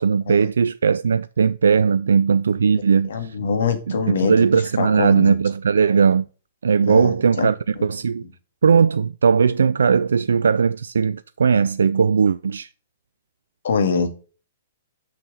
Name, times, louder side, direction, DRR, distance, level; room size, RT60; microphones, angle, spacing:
voice 1, 0.0-3.4 3.9-6.3 6.6-8.2 8.6-12.7, right 6 dB, 70° right, 0.3 m, -18 dB
voice 2, 3.0-5.4 6.9-7.5 7.8-7.9 13.6-14.1, left 5 dB, 65° left, 2.2 m, -24 dB
6.4 x 6.1 x 6.8 m
figure-of-eight pair, 115°, 0 cm